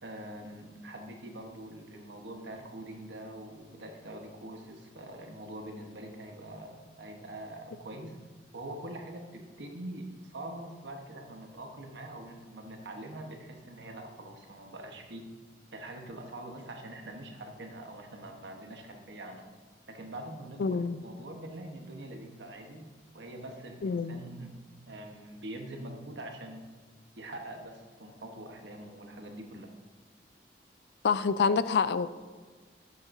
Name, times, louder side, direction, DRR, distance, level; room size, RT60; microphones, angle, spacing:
voice 1, 0.0-8.2 8.5-15.2 15.7-19.4 19.9-24.5 24.9-26.6 27.2-29.7, right 1 dB, 75° right, 3 dB, 1.1 m, -44 dB
voice 2, 20.6-21.0 23.8-24.2 31.0-32.1, left 5 dB, 65° left, 14 dB, 0.3 m, -27 dB
9.4 x 7.3 x 2.6 m, 1.5 s
head